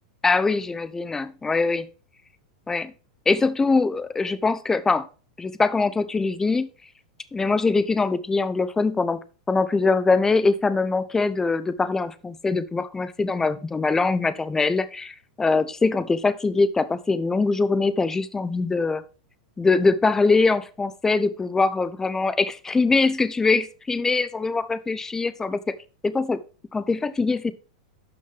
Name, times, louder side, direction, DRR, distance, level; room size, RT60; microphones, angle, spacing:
voice 1, 0.2-1.9 2.7-2.9 3.3-5.1 5.4-6.7 7.3-9.2 9.5-19.0 19.6-25.6 26.0-26.4 26.7-27.5, left 3 dB, 15° left, 14 dB, 0.9 m, -22 dB
11.5 x 6.3 x 3.6 m, 0.35 s
hypercardioid pair, 100°, 4 cm